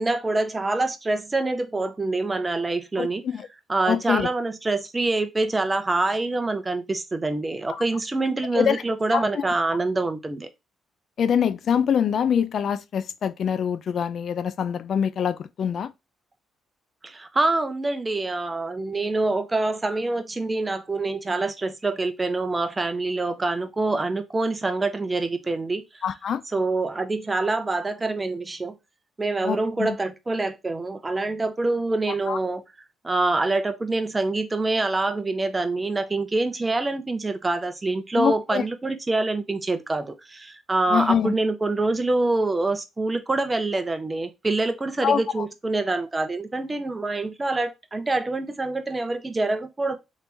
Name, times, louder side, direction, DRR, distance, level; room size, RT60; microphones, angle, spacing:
voice 1, 0.0-3.2 3.7-10.5 17.0-26.0 26.5-28.7 29.2-32.6 33.0-50.0, right 2 dB, 20° right, 0.7 m, -25 dB
voice 2, 3.0-3.5 3.9-4.3 8.5-8.8 9.1-9.4 11.2-15.9 26.0-26.4 29.4-30.0 32.3-32.4 38.2-38.6 40.9-41.3 45.0-45.5, left 8 dB, 60° left, 0.3 m, -24 dB
3.3 x 3.0 x 4.0 m
cardioid pair, 90°, 0 cm